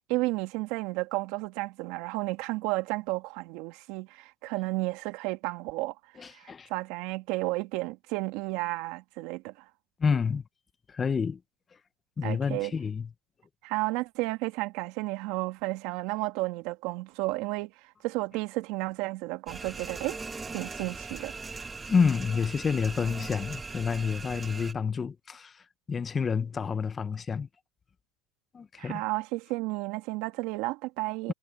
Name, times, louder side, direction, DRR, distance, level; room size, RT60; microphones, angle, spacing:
voice 1, 0.1-5.9 6.3-6.4 6.7-9.5 12.2-12.7 13.6-17.7 18.0-20.2 20.5-21.3 28.8-31.3, right 21 dB, 60° right, 1.9 m, -32 dB
voice 2, 6.2-6.7 10.0-10.4 10.9-11.4 12.2-13.1 21.9-25.5 25.9-27.5 28.5-29.0, left 6 dB, 20° left, 0.8 m, -28 dB
sound 1, 19.5-24.7, right 4 dB, 15° right, 1.3 m, -40 dB
supercardioid pair, 135°, 0 cm